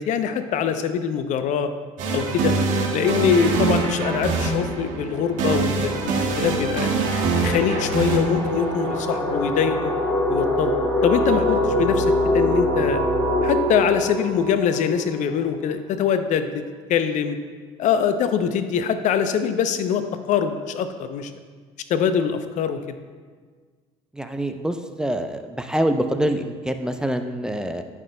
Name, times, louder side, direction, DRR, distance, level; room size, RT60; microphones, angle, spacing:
voice 1, 0.0-1.7 2.1-2.5 2.9-6.9 7.4-9.9 10.3-10.7 11.0-13.0 13.4-16.6 16.9-17.4 17.8-21.3 21.9-23.0, left 7 dB, 55° left, 9 dB, 0.6 m, -23 dB
sound 1, 2.0-9.9, right 3 dB, 60° right, 1.7 m, -24 dB
sound 2, 4.3-15.7, left 1 dB, 15° left, 1.7 m, -25 dB
voice 2, 24.1-27.8, right 1 dB, 5° right, 6 dB, 0.6 m, -25 dB
15.0 x 5.9 x 2.2 m, 1.6 s
hypercardioid pair, 65°, 15 cm